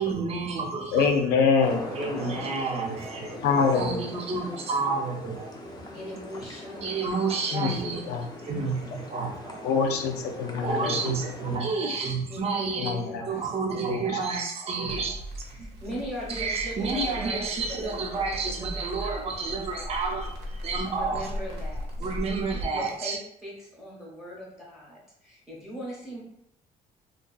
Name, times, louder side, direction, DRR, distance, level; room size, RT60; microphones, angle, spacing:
voice 1, 0.0-1.1 1.9-5.9 6.8-8.0 8.4-9.7 10.6-12.9 13.3-15.2 15.6-15.7 16.3-21.3 22.0-23.2, right 4 dB, 35° right, 1 dB, 0.5 m, -30 dB
voice 2, 0.9-2.1 3.4-4.0 7.5-7.7 8.1-8.2 9.6-11.2 12.8-13.2 13.9-14.0, left 5 dB, 80° left, 4 dB, 0.4 m, -24 dB
sound 1, 1.6-11.6, left 1 dB, 25° left, 0.4 m, -42 dB
voice 3, 2.9-3.6 5.9-7.1 10.6-11.0 11.4-11.8 12.3-14.0 15.5-20.0 20.9-22.1 22.5-26.2, equal, ahead, -5 dB, 0.8 m, -40 dB
Crackle, 14.8-22.7, equal, 75° right, 0.7 m, -37 dB
2.4 x 2.2 x 2.3 m, 0.75 s
cardioid pair, 110°, 17 cm